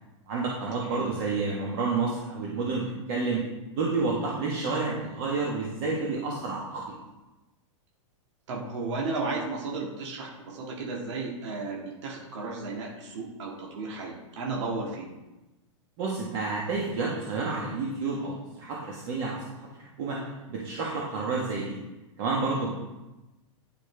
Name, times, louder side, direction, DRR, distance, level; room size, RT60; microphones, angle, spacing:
voice 1, 0.3-3.4 3.7-6.9 16.0-19.4 19.7-20.2 20.5-21.8 22.2-22.7, right 3 dB, 45° right, -3 dB, 1.4 m, -30 dB
voice 2, 8.5-15.1, right 3 dB, 60° right, -2 dB, 2.0 m, -34 dB
10.0 x 5.1 x 3.4 m, 1.1 s
supercardioid pair, 160°, 16 cm